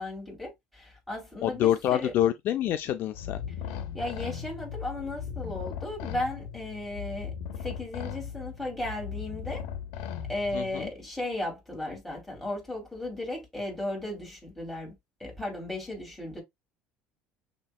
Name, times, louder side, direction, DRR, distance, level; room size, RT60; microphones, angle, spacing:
voice 1, 0.0-2.1 3.9-9.6 10.3-14.9 15.2-16.4, left 1 dB, 5° left, 2.7 m, -35 dB
voice 2, 1.4-3.4 10.5-10.9, left 11 dB, 55° left, 0.4 m, -26 dB
sound 1, 3.1-10.8, left 8 dB, 90° left, 0.9 m, -38 dB
6.4 x 2.9 x 2.2 m
cardioid pair, 135°, 4 cm